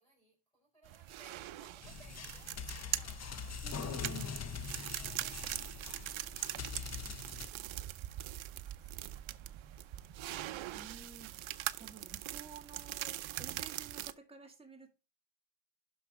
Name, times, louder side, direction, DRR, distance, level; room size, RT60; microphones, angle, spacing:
voice 1, 0.0-5.6, right 2 dB, 5° left, 4.4 m, -65 dB
sound 1, 0.8-14.1, right 14 dB, 80° right, 0.7 m, -42 dB
sound 2, 1.8-7.5, left 6 dB, 35° left, 0.6 m, -43 dB
voice 2, 3.6-4.3 10.7-14.9, right 5 dB, 10° right, 2.3 m, -52 dB
sound 3, 4.0-11.7, right 8 dB, 35° right, 1.9 m, -59 dB
12.0 x 4.7 x 3.7 m
cardioid pair, 135°, 47 cm